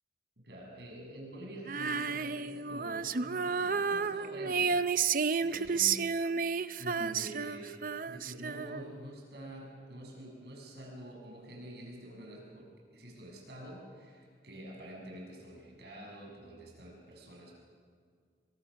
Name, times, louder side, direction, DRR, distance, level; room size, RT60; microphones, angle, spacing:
voice 1, 0.4-6.0 6.8-7.7 8.1-17.5, right 1 dB, 65° right, -1 dB, 6.9 m, -47 dB
Female singing, 1.7-9.0, right 5 dB, 50° right, 0.6 m, -32 dB
28.0 x 24.5 x 6.4 m, 2.1 s
head